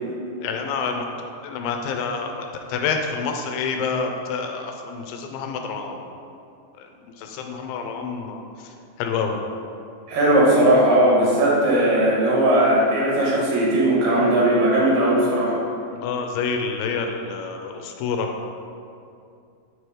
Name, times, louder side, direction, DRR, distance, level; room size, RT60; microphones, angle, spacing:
voice 1, 0.4-1.0 1.4-6.0 7.2-8.4 9.0-9.3 15.9-18.3, left 5 dB, 90° left, 4 dB, 2.3 m, -27 dB
voice 2, 10.1-15.6, right 1 dB, 80° right, -5 dB, 3.0 m, -18 dB
6.5 x 3.0 x 4.8 m, 2.5 s
omnidirectional pair, 4.0 m